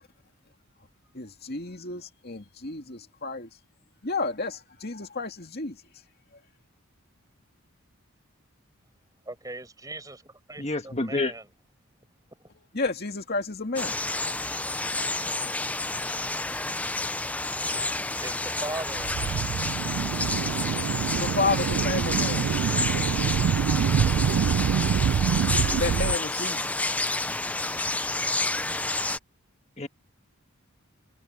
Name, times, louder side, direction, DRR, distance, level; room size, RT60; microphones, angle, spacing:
voice 1, 1.1-3.5 4.0-5.8 12.7-14.0 21.2-22.5 25.5-26.8, left 3 dB, 45° left, 2.4 m, -31 dB
voice 2, 9.2-11.4 18.0-19.5, right 2 dB, 15° right, 6.5 m, -39 dB
voice 3, 10.6-11.3 29.8-29.9, left 2 dB, 30° left, 1.6 m, -28 dB
sound 1, 13.8-29.2, left 2 dB, 5° left, 0.5 m, -29 dB
sound 2, 18.9-26.2, right 8 dB, 80° right, 0.3 m, -26 dB
head